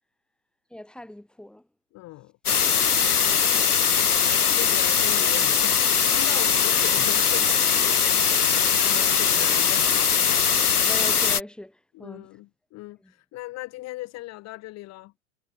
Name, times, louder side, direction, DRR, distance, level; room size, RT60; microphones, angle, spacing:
voice 1, 0.7-1.6 10.9-12.3 13.0-13.1, left 1 dB, ahead, 3.5 m, -39 dB
voice 2, 1.9-2.3 3.4-10.0 11.9-15.1, left 18 dB, 35° left, 2.0 m, -39 dB
sound 1, 2.5-11.4, left 7 dB, 90° left, 1.2 m, -21 dB
hypercardioid pair, 100°, 44 cm